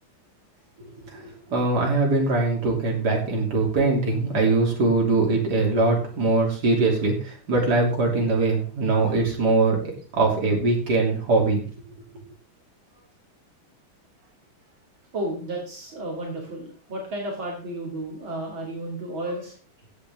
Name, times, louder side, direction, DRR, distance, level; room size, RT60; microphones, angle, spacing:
voice 1, 1.1-9.8 10.1-11.6, right 3 dB, 50° right, -1 dB, 3.7 m, -22 dB
voice 2, 15.1-19.5, right 1 dB, 65° right, -2 dB, 3.3 m, -32 dB
16.0 x 8.7 x 3.6 m, 0.40 s
omnidirectional pair, 2.3 m